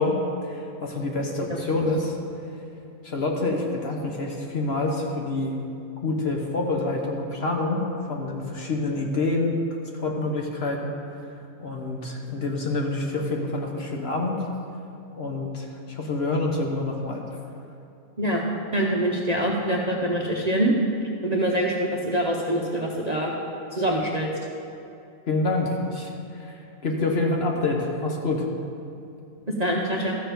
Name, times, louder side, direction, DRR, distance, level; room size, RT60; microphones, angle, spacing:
voice 1, 0.0-2.2 3.0-5.6 6.0-9.5 9.9-11.0 11.6-14.4 15.2-17.2 25.3-28.5, left 2 dB, 50° left, 1 dB, 1.2 m, -27 dB
voice 2, 18.7-20.7 21.2-23.3 23.7-24.3 29.5-30.2, right 1 dB, 35° right, -2 dB, 0.8 m, -24 dB
13.0 x 6.8 x 5.2 m, 2.6 s
omnidirectional pair, 1.5 m